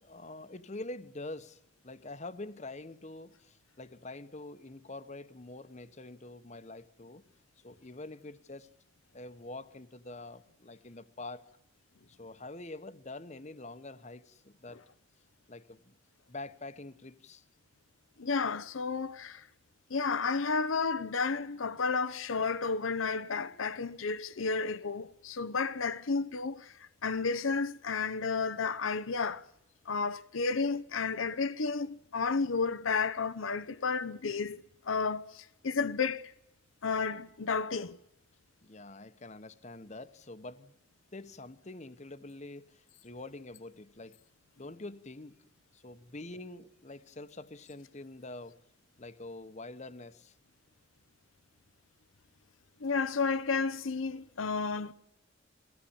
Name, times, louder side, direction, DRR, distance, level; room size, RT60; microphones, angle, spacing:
voice 1, 0.0-7.3 7.6-8.7 9.1-11.4 12.1-14.8 15.5-16.0 16.3-17.4 38.6-40.7 41.1-44.2 44.6-45.4 45.7-48.5 49.0-50.3, left 2 dB, 35° left, 1.0 m, -45 dB
voice 2, 18.2-19.5 19.9-29.5 29.9-36.3 36.8-38.0 52.8-54.9, left 4 dB, 85° left, 0.8 m, -32 dB
22.0 x 16.5 x 8.7 m
head